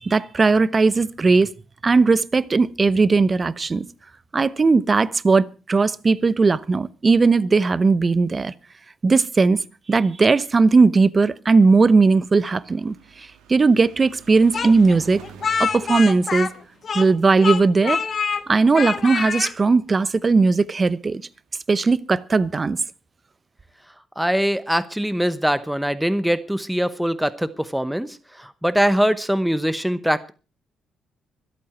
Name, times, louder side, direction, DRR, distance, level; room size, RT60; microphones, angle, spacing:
voice 1, 0.0-1.5 1.8-3.8 4.3-8.5 9.0-9.6 9.9-15.2 15.6-16.5 16.9-18.0 18.5-21.2 21.7-22.8, right 4 dB, 30° right, 0.9 m, -18 dB
sound 1, 11.6-20.1 20.9-21.0 21.2-21.3 21.6-21.7, right 7 dB, 90° right, 2.8 m, -48 dB
Speech, 14.5-17.2 17.4-18.4 18.7-19.5, left 6 dB, 45° left, 1.5 m, -25 dB
voice 2, 24.2-30.3, equal, 5° right, 0.9 m, -22 dB
25.0 x 8.7 x 4.3 m
cardioid pair, 90°, 0 cm